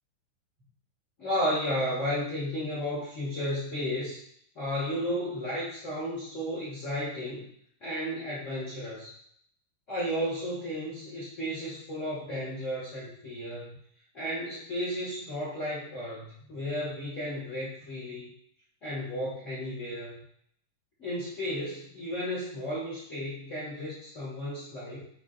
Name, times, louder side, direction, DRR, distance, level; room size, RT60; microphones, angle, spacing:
voice 1, 1.2-4.2 4.5-7.5 7.8-9.1 9.9-13.8 14.1-18.3 18.8-20.2 21.0-25.0, equal, 70° left, -9 dB, 0.7 m, -33 dB
7.5 x 2.8 x 2.5 m, 0.64 s
omnidirectional pair, 3.8 m